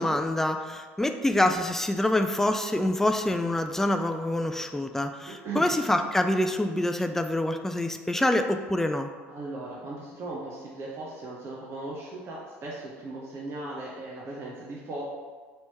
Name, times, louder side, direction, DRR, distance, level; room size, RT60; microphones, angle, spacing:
voice 1, 0.0-9.1, left 1 dB, 5° left, 6 dB, 0.3 m, -26 dB
voice 2, 5.3-5.7 9.3-15.0, right 2 dB, 40° right, -4 dB, 0.8 m, -37 dB
3.3 x 3.0 x 4.2 m, 1.5 s
hypercardioid pair, 70°, 7 cm